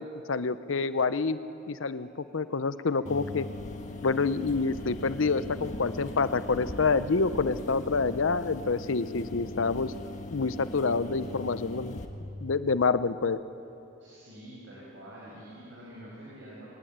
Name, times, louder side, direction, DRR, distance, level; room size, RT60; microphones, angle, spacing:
voice 1, 0.0-1.4 1.7-3.5 4.0-9.9 10.3-12.0 12.4-13.4, left 4 dB, 85° left, 13 dB, 0.7 m, -27 dB
sound 1, 1.3-1.4 1.7-1.8 2.1-2.2 2.8-3.3 4.0-8.8, equal, 5° left, 6.7 m, -55 dB
sound 2, 3.1-12.1, left 1 dB, 40° left, 1.6 m, -39 dB
voice 2, 14.0-16.7, right 1 dB, 70° right, -6 dB, 6.1 m, -46 dB
21.5 x 19.0 x 8.8 m, 2.9 s
head